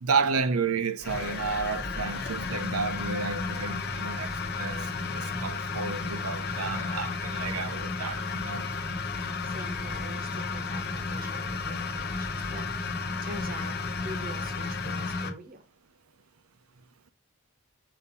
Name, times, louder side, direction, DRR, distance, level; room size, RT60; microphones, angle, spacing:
voice 1, 0.0-4.3 4.6-8.7, right 5 dB, 80° right, 0.6 m, -31 dB
sound 1, 1.0-15.3, left 4 dB, 45° left, 1.0 m, -33 dB
voice 2, 9.2-15.6, right 1 dB, 40° right, 0.9 m, -44 dB
6.3 x 2.7 x 5.4 m
head